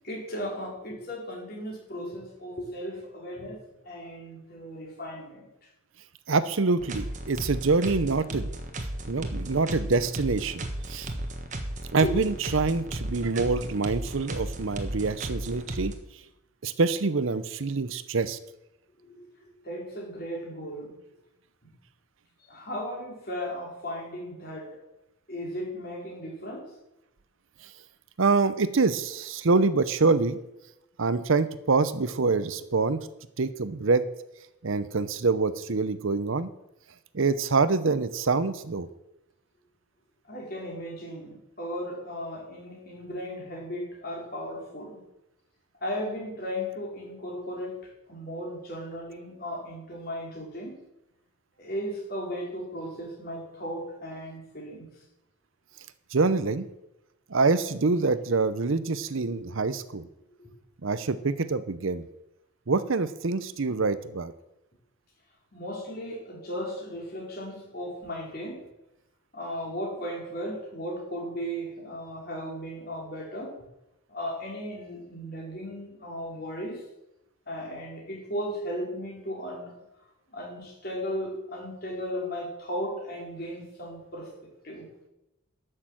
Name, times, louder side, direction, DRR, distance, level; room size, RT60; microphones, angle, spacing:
voice 1, 0.0-3.6 3.8-5.5 12.0-12.1 19.0-20.9 22.5-24.8 25.3-26.7 40.3-45.0 45.8-50.8 51.6-54.9 59.3-59.5 60.4-60.5 65.5-68.6 69.3-73.5 74.1-76.8 77.5-79.7 80.3-84.9, equal, 45° left, -2 dB, 4.0 m, -36 dB
voice 2, 6.3-8.5 9.1-11.2 11.9-15.9 16.6-18.4 28.2-30.4 31.0-33.1 33.4-34.1 34.6-36.5 37.1-38.9 56.1-56.7 57.3-60.1 60.8-62.1 62.7-64.3, right 4 dB, 70° right, 14 dB, 0.7 m, -25 dB
sound 1, 6.8-15.9, right 1 dB, 35° right, 1.3 m, -35 dB
12.0 x 6.6 x 7.6 m, 0.88 s
head